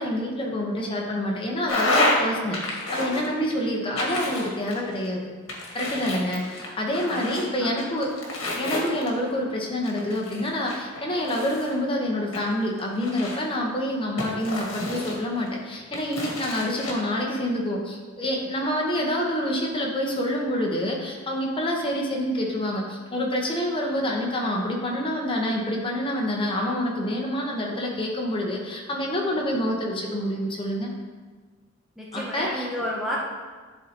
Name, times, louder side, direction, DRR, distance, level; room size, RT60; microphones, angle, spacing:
voice 1, 0.0-5.3 5.7-8.1 8.6-30.9 32.1-32.7, left 1 dB, 25° left, -1 dB, 1.0 m, -27 dB
sound 1, 1.7-2.2 2.5-3.5 4.0-5.1 5.5-7.4 7.8-9.3 9.8-11.7 12.3-13.6 14.2-15.5 15.9-16.9, left 2 dB, 75° left, 1.4 m, -29 dB
voice 2, 7.1-7.7 32.0-33.3, equal, ahead, -5 dB, 0.7 m, -31 dB
11.0 x 3.9 x 2.9 m, 1.4 s
head